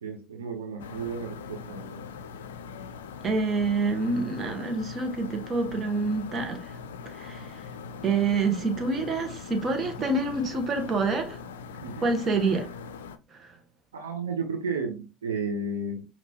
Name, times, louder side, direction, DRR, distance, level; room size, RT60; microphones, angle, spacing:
voice 1, 0.0-2.1 11.8-12.1 13.9-16.1, right 4 dB, 85° right, 0.7 m, -33 dB
sound 1, 0.8-13.2, left 5 dB, 80° left, 0.4 m, -41 dB
voice 2, 3.2-6.8 7.0-7.6 8.0-11.4 12.0-12.7 13.3-13.5, right 3 dB, 40° right, 1.3 m, -27 dB
5.4 x 2.9 x 2.8 m
hypercardioid pair, 70°, 0 cm